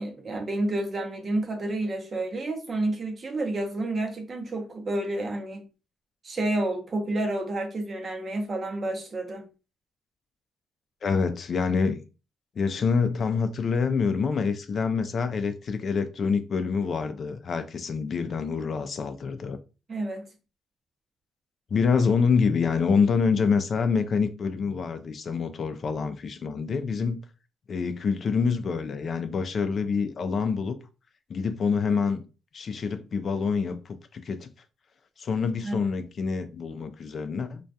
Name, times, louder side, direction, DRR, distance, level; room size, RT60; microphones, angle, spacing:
voice 1, 0.0-5.6 6.2-9.5 19.9-20.3 35.6-35.9, right 2 dB, 40° right, 0.7 m, -30 dB
voice 2, 11.0-12.0 12.6-19.6 21.7-27.2 27.7-30.7 31.3-32.2 32.5-34.5 35.2-37.6, left 5 dB, 50° left, 0.3 m, -26 dB
2.2 x 2.2 x 2.6 m
cardioid pair, 90°, 0 cm